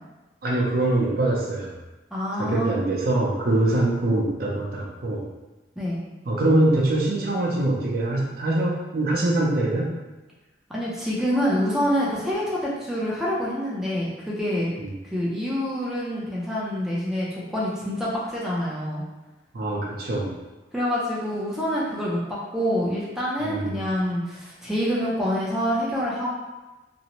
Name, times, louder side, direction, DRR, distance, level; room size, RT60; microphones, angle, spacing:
voice 1, 0.4-1.7 2.4-5.2 6.3-9.9 14.8-14.9 19.5-20.4 23.4-23.8, right 2 dB, 55° right, -3 dB, 0.5 m, -23 dB
voice 2, 2.1-2.8 5.8-6.0 10.7-14.7 15.0-19.0 20.7-26.3, equal, ahead, -7 dB, 0.4 m, -26 dB
2.5 x 2.0 x 2.9 m, 1.1 s
head